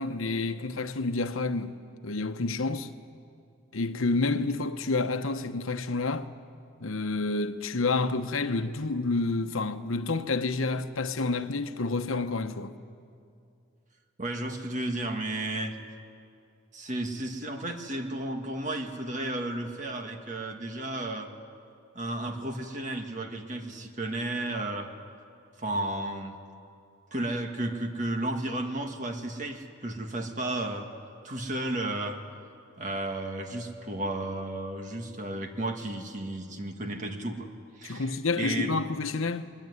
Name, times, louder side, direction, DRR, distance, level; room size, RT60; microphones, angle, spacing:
voice 1, 0.0-1.8 2.0-2.9 3.7-6.3 6.8-12.7 37.8-39.5, left 3 dB, 80° left, 1.0 m, -29 dB
voice 2, 14.2-15.8 16.7-21.3 22.0-24.9 25.6-26.4 27.1-30.9 31.2-32.2 32.8-37.5 37.8-38.8, right 1 dB, 35° right, 1.8 m, -33 dB
22.5 x 21.5 x 9.6 m
head